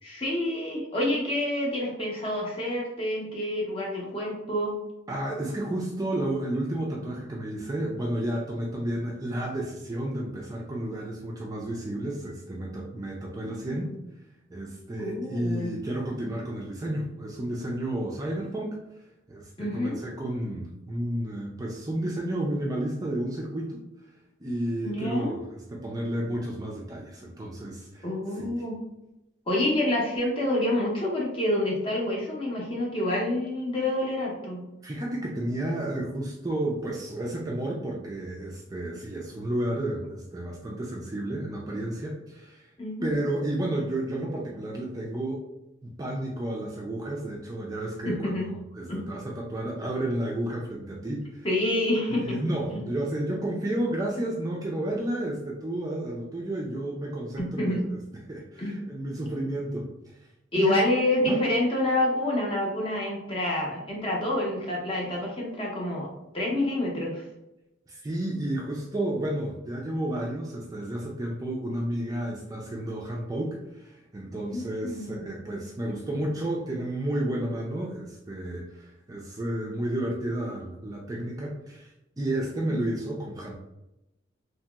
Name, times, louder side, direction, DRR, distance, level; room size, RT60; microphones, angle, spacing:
voice 1, 0.0-4.8 13.5-13.8 15.0-15.7 19.6-20.0 24.8-25.4 28.0-28.8 29.5-34.6 42.8-43.1 48.0-48.5 48.9-49.0 51.4-52.4 52.7-52.8 57.4-57.8 58.6-58.8 60.5-66.1 66.3-67.2 74.3-75.2 82.7-83.0, left 1 dB, 25° left, -2 dB, 0.7 m, -28 dB
voice 2, 5.1-13.9 14.5-18.8 19.3-23.8 24.4-28.1 28.4-28.6 34.8-42.7 43.0-45.4 45.8-51.5 52.1-60.1 60.6-60.8 61.3-61.4 67.9-83.5, right 1 dB, 20° right, -2 dB, 0.3 m, -32 dB
2.8 x 2.8 x 2.3 m, 0.91 s
head